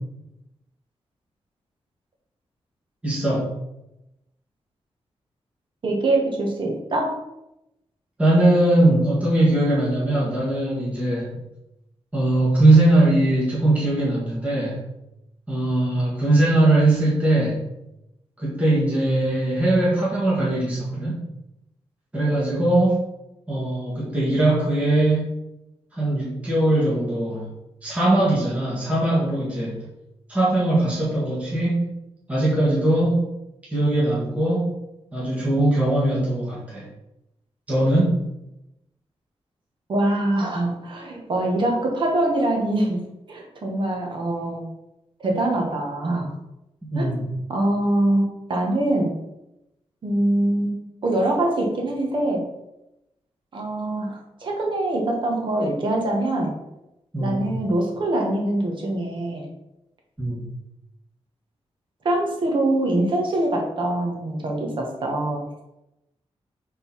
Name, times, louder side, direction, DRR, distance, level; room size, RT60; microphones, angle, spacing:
voice 1, 3.0-3.5 8.2-11.3 12.1-14.8 15.5-17.6 18.4-21.2 22.1-23.0 23.5-25.3 25.9-27.5 27.8-29.9 30.3-31.9 32.3-33.2 33.7-34.7 35.1-36.9 37.7-38.2 46.9-47.3 57.1-57.3 60.2-60.5, right 1 dB, 10° right, -7 dB, 1.7 m, -20 dB
voice 2, 5.8-7.1 39.9-43.0 43.3-44.6 45.2-46.3 47.0-47.1 47.5-49.1 50.0-52.4 53.5-56.5 57.2-59.5 62.0-65.4, right 1 dB, 50° right, 0 dB, 1.6 m, -23 dB
5.3 x 3.9 x 5.9 m, 0.90 s
wide cardioid pair, 175°, 11 cm